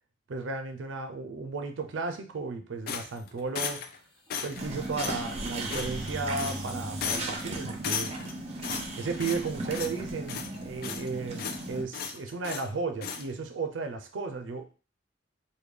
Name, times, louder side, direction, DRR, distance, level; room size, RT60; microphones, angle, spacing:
voice 1, 0.3-3.8 4.4-8.1 8.5-8.6 9.0-14.8, right 4 dB, 80° right, 6 dB, 0.4 m, -34 dB
sound 1, 2.9-4.0 4.3-4.7 5.0-5.2 5.7-6.1 6.4-6.7 7.0-7.4 7.8-8.3 8.6-9.5 9.7-10.0 10.3-11.1 11.4-11.6 11.9-12.7 13.0-13.2, left 7 dB, 50° left, 0.3 m, -35 dB
sound 2, 4.3-7.4, equal, 25° left, 0.7 m, -43 dB
sound 3, 4.6-11.8, right 2 dB, 35° right, 0.6 m, -37 dB
3.2 x 2.2 x 3.4 m, 0.35 s
head